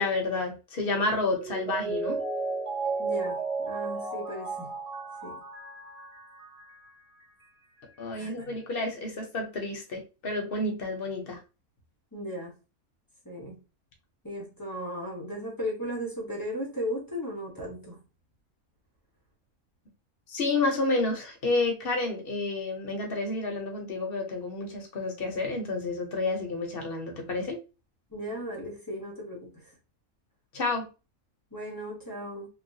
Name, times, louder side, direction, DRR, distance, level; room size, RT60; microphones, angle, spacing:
voice 1, 0.0-2.2 8.0-11.4 20.3-27.6 30.5-30.9, left 3 dB, 50° left, 0.9 m, -30 dB
Mallet percussion, 1.3-6.9 7.2-7.3, right 4 dB, 90° right, 0.3 m, -33 dB
voice 2, 3.0-4.7 5.2-5.4 8.1-8.5 12.1-12.5 13.2-13.5 14.2-18.0 28.1-29.5 31.5-32.5, equal, 20° left, 0.7 m, -36 dB
3.1 x 2.3 x 2.6 m
omnidirectional pair, 1.5 m